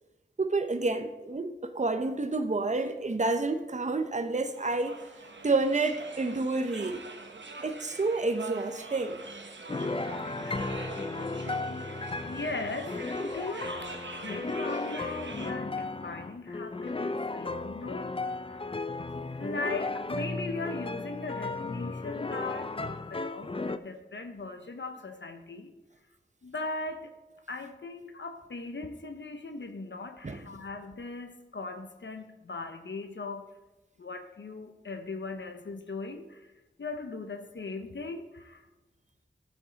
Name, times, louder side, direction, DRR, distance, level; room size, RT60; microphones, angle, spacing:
voice 1, 0.4-5.0 5.4-7.0 7.6-9.2 30.2-30.5, right 3 dB, 40° right, 0.8 m, -29 dB
sound 1, 4.5-15.5, right 3 dB, 75° right, 1.1 m, -44 dB
sound 2, 9.7-23.8, left 3 dB, 30° left, 0.4 m, -35 dB
voice 2, 11.4-13.7 14.1-18.1 19.4-22.7 23.1-25.7 26.4-27.1 27.5-33.5 34.0-36.5 36.8-38.6, left 3 dB, 75° left, 0.8 m, -39 dB
12.5 x 7.3 x 4.0 m
wide cardioid pair, 45°, 19 cm